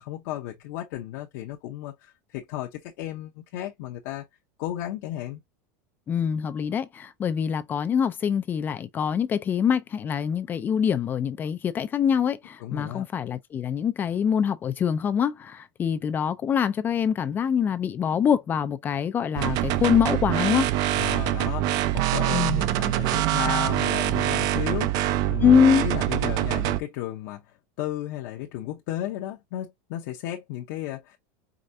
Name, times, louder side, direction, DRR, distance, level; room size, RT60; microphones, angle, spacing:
voice 1, 0.0-4.3 4.6-5.4 12.6-13.0 20.9-25.5 25.8-31.2, left 13 dB, 55° left, 0.8 m, -34 dB
voice 2, 6.1-20.7 22.3-22.6 25.4-25.8, left 7 dB, 20° left, 0.4 m, -24 dB
sound 1, 19.4-26.8, right 14 dB, 40° right, 0.5 m, -24 dB
4.9 x 3.2 x 2.6 m
supercardioid pair, 160°, 10 cm